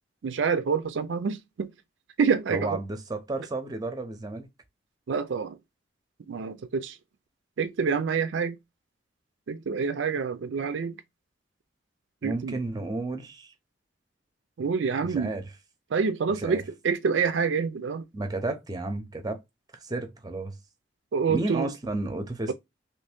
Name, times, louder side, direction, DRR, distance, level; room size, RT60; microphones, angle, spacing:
voice 1, 0.2-1.7 2.2-2.8 5.1-5.6 6.3-7.0 7.6-8.6 9.5-11.0 12.2-12.6 14.6-15.3 15.9-18.1 21.1-21.7, right 5 dB, 80° right, 0.4 m, -27 dB
voice 2, 2.5-4.5 12.2-13.5 15.1-15.4 16.4-16.6 18.1-19.4 19.8-20.5 21.3-22.5, right 2 dB, 20° right, 0.6 m, -32 dB
3.0 x 2.6 x 3.3 m
head